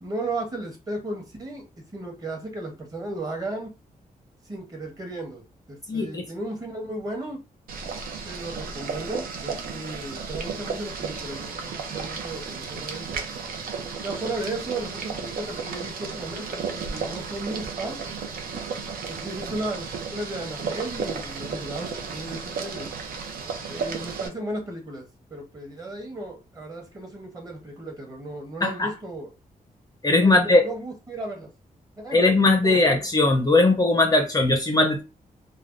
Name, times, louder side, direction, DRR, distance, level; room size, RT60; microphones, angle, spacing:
voice 1, 0.0-1.7 1.9-3.7 4.5-5.4 5.7-7.4 8.2-13.2 14.0-18.0 19.0-22.9 23.7-29.3 30.2-31.5 32.0-32.2 32.6-32.8, right 2 dB, 25° right, 1 dB, 0.9 m, -35 dB
voice 2, 5.9-6.2 28.6-28.9 30.0-30.6 32.1-35.0, left 2 dB, 25° left, 3 dB, 0.5 m, -19 dB
Boiling, 7.7-24.3, right 5 dB, 80° right, 0.6 m, -33 dB
3.3 x 2.1 x 2.5 m, 0.29 s
wide cardioid pair, 150°, 15 cm